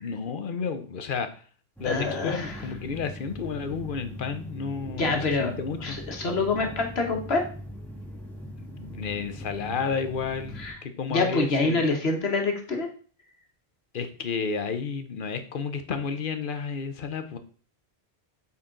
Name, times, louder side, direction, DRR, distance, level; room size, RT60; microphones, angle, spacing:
voice 1, 0.0-1.3 1.8-6.0 8.8-11.8 13.9-17.4, left 5 dB, 60° left, 9 dB, 1.0 m, -31 dB
voice 2, 1.8-2.6 5.0-5.5 5.8-7.4 10.6-10.8 11.1-12.9, left 3 dB, 75° left, 3 dB, 1.6 m, -26 dB
sound 1, 1.8-10.7, equal, ahead, 1.7 m, -41 dB
8.3 x 4.3 x 3.8 m, 0.42 s
omnidirectional pair, 1.1 m